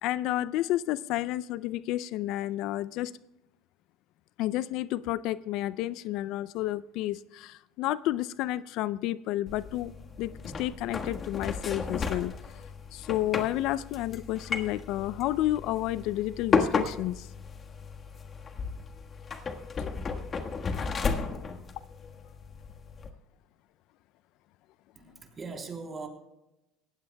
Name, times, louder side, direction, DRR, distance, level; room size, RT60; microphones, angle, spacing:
voice 1, 0.0-3.1 4.4-9.9 10.2-12.3 12.9-17.3, left 15 dB, 65° left, 17 dB, 0.4 m, -31 dB
sound 1, 9.5-23.1, left 5 dB, 35° left, 1.4 m, -34 dB
voice 2, 24.9-26.1, right 4 dB, 30° right, 2 dB, 3.3 m, -40 dB
19.5 x 15.5 x 2.2 m, 0.93 s
hypercardioid pair, 80°, 0 cm